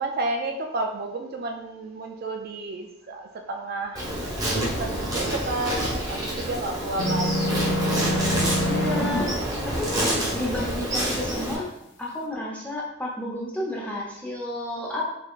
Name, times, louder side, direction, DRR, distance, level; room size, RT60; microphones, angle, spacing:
voice 1, 0.0-4.2 4.5-7.8, right 2 dB, 45° right, 3 dB, 0.3 m, -32 dB
Insect, 3.9-11.5, right 1 dB, 20° right, 1.0 m, -28 dB
sound 1, 7.0-9.2, left 1 dB, 55° left, 0.6 m, -25 dB
voice 2, 8.3-11.7 12.0-15.0, left 1 dB, 5° left, -3 dB, 0.7 m, -32 dB
3.7 x 3.6 x 2.4 m, 0.81 s
head